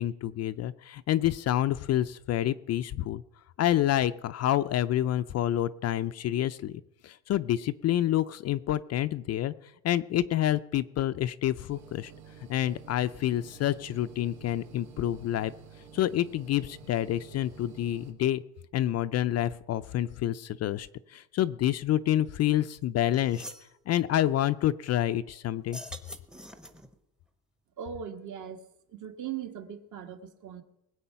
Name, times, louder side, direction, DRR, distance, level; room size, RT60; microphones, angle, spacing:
voice 1, 0.0-3.2 3.6-9.5 9.8-12.1 12.5-15.5 15.9-18.4 18.7-23.4 23.9-25.8, left 12 dB, 45° left, 12 dB, 0.4 m, -28 dB
sound 1, 11.7-18.1, right 6 dB, 85° right, 2.7 m, -51 dB
sound 2, 22.7-22.8 23.1-23.7 25.6-26.9, equal, ahead, 0.8 m, -44 dB
voice 2, 27.8-28.6 28.9-30.6, right 8 dB, 50° right, 7 dB, 1.6 m, -39 dB
20.0 x 8.3 x 5.7 m, 0.84 s
cardioid pair, 140°, 39 cm